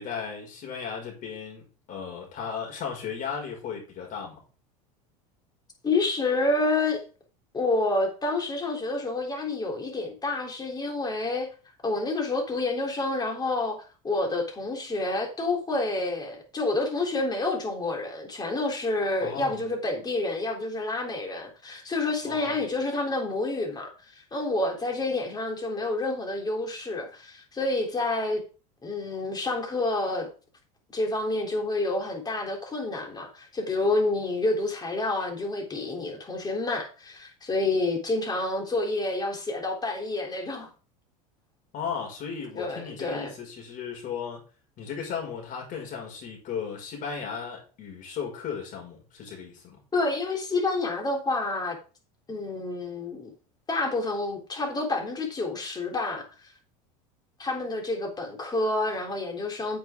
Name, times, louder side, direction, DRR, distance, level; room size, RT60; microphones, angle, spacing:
voice 1, 0.0-1.6 1.9-4.4 19.2-19.6 22.2-22.6 41.7-44.4 44.8-49.8, left 6 dB, 50° left, 5.8 m, -35 dB
voice 2, 5.8-7.0 7.5-11.5 11.8-28.4 28.8-30.3 30.9-40.7 42.6-43.3 49.9-51.8 52.3-53.3 53.7-56.3 57.4-59.8, left 2 dB, 20° left, 3.6 m, -28 dB
9.6 x 7.9 x 3.8 m
supercardioid pair, 105°, 18 cm